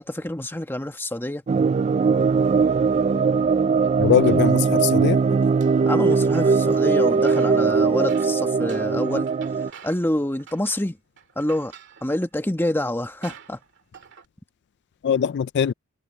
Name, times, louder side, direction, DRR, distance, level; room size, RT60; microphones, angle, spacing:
voice 1, 0.0-1.4 5.8-9.3 9.8-11.0 11.3-11.7 12.0-13.6, left 1 dB, 10° left, 1.3 m, -27 dB
sound 1, 1.5-9.7, right 5 dB, 30° right, 0.3 m, -20 dB
sound 2, 3.8-5.0 5.4-6.8 7.1-10.1 10.4-10.9 11.2-12.3 12.8-12.9 13.2-14.3, right 7 dB, 60° right, 2.2 m, -48 dB
voice 2, 4.0-5.4 15.0-15.7, left 8 dB, 55° left, 0.3 m, -21 dB
head